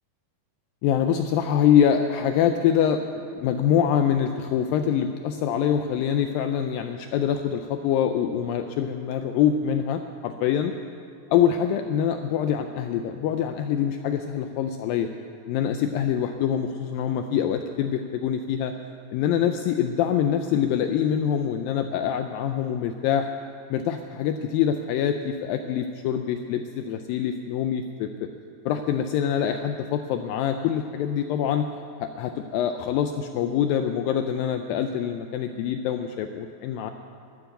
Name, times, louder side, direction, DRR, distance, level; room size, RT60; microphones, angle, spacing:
voice 1, 0.8-10.7 11.3-15.1 15.5-18.7 19.1-23.3 23.7-28.3 28.7-31.7 32.0-36.9, left 9 dB, 85° left, 7 dB, 2.0 m, -25 dB
12.5 x 8.7 x 9.0 m, 2.6 s
omnidirectional pair, 4.7 m